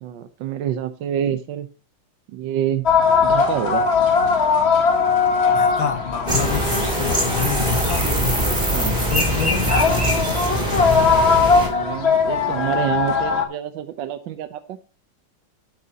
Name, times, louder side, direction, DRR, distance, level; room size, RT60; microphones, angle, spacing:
voice 1, 0.0-1.7 2.3-2.9 3.2-3.8 8.7-9.0 11.6-14.8, right 10 dB, 75° right, 1.4 m, -27 dB
sound 1, 2.9-13.5, left 5 dB, 40° left, 1.1 m, -20 dB
voice 2, 5.5-8.2 9.0-9.7, left 8 dB, 80° left, 2.0 m, -28 dB
sound 2, 6.3-11.7, equal, 20° right, 3.1 m, -22 dB
11.0 x 8.0 x 2.8 m
omnidirectional pair, 2.1 m